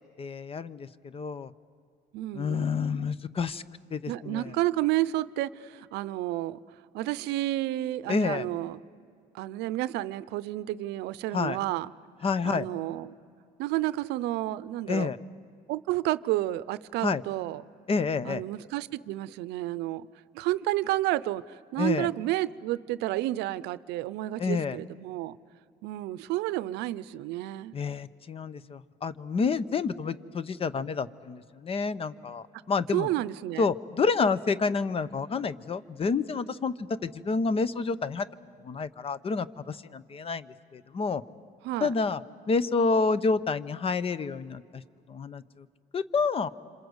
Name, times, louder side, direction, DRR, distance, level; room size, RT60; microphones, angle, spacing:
voice 1, 0.0-1.5 2.3-3.6 3.9-4.6 8.1-8.5 11.3-11.6 12.2-12.7 14.9-15.2 17.0-17.2 17.9-18.4 21.8-22.1 24.4-24.8 27.7-33.1 33.6-38.3 38.6-41.2 41.8-42.2 42.5-44.8 45.1-45.7 45.9-46.5, left 4 dB, 35° left, 0.8 m, -29 dB
voice 2, 2.1-2.7 4.1-6.6 6.9-8.8 9.3-11.9 12.4-13.2 13.6-15.1 15.7-17.6 18.2-20.1 20.3-25.4 25.8-27.8 32.9-33.7 41.6-41.9, right 16 dB, 90° right, 0.6 m, -31 dB
27.0 x 26.0 x 8.0 m
cardioid pair, 110°, 17 cm